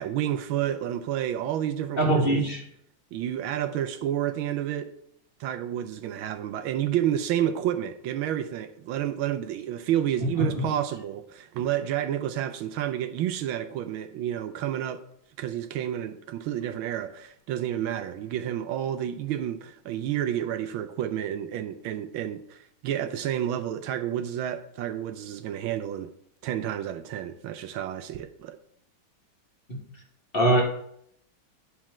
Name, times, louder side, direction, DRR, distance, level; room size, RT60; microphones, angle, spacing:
voice 1, 0.0-2.4 3.1-4.9 5.4-15.0 15.4-26.1 26.4-28.6, right 11 dB, 75° right, 1.4 m, -30 dB
voice 2, 2.0-2.6 10.2-10.7 29.7-29.8 30.3-30.6, right 1 dB, 30° left, 1.3 m, -23 dB
9.4 x 4.3 x 6.0 m
omnidirectional pair, 2.3 m